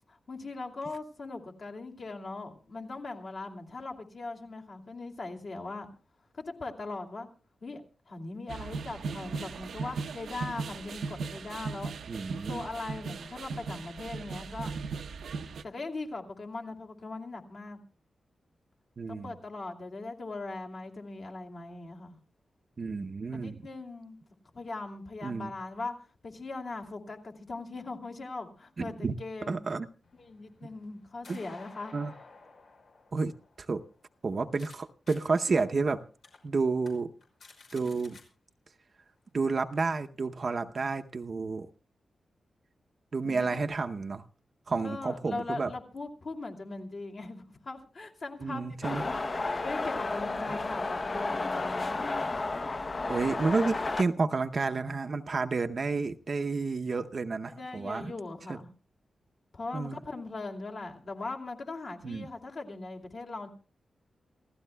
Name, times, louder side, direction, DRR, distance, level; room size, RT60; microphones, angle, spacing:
voice 1, 0.3-5.9 6.3-7.3 7.6-7.8 8.1-11.9 12.4-14.7 15.6-17.8 19.1-22.2 23.3-24.2 24.5-26.0 26.2-29.6 30.2-31.9 43.3-43.6 44.8-52.0 57.5-58.7 59.5-63.5, left 3 dB, 50° left, 2 dB, 2.5 m, -40 dB
sound 1, 8.5-15.6, right 4 dB, 85° right, 0.8 m, -38 dB
voice 2, 12.1-12.6 19.0-19.3 22.8-23.7 25.2-25.5 28.8-29.1 29.5-29.9 31.3-31.4 31.9-32.1 33.1-33.3 33.6-33.8 34.2-36.0 36.4-37.1 37.7-38.2 39.3-41.7 43.1-44.2 44.7-45.7 48.4-49.1 53.1-58.1 58.5-58.6 59.7-60.0 62.0-62.3, right 4 dB, 40° right, 7 dB, 0.7 m, -30 dB
sound 2, 30.0-34.8 35.1-35.2 35.7-35.8 36.2-36.4 36.8-36.9 37.2-38.2, left 3 dB, 75° left, 5.7 m, -53 dB
sound 3, 48.8-54.0, left 3 dB, 30° left, 0.7 m, -32 dB
28.5 x 15.5 x 2.2 m, 0.37 s
wide cardioid pair, 150°, 0 cm